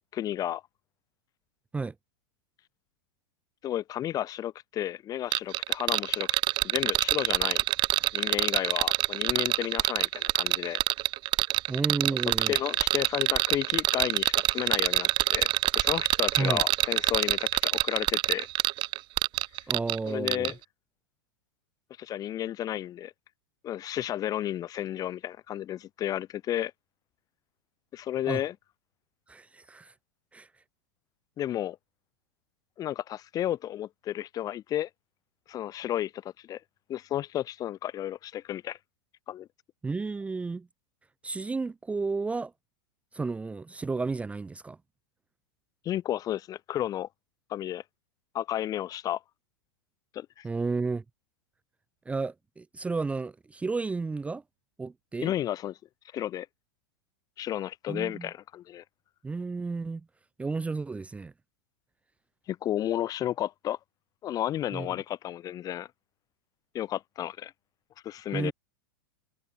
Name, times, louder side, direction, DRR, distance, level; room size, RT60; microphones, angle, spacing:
voice 1, 0.1-0.6 3.6-6.3 6.6-7.6 8.1-10.8 12.5-18.5 20.1-20.5 22.0-23.1 23.6-26.7 27.9-28.5 31.4-31.8 32.8-34.9 35.5-36.6 36.9-38.8 39.3-39.5 45.8-47.1 47.5-47.8 48.3-49.2 50.1-50.4 55.2-55.7 56.1-56.5 57.4-58.8 62.5-63.8 64.2-65.9 66.7-67.5 68.0-68.5, left 12 dB, 30° left, 0.9 m, -32 dB
sound 1, 5.3-20.0 20.3-20.5, right 18 dB, 40° right, 1.1 m, -25 dB
voice 2, 11.7-12.6 16.4-16.6 19.7-20.5 28.3-28.4 29.3-29.9 30.3-30.5 39.8-40.7 41.2-42.5 43.1-44.8 50.4-51.0 52.1-54.4 54.8-55.3 57.9-58.3 59.2-60.0 60.4-61.3 64.7-65.0 68.3-68.5, right 4 dB, 10° right, 0.9 m, -32 dB
hypercardioid pair, 120°, 13 cm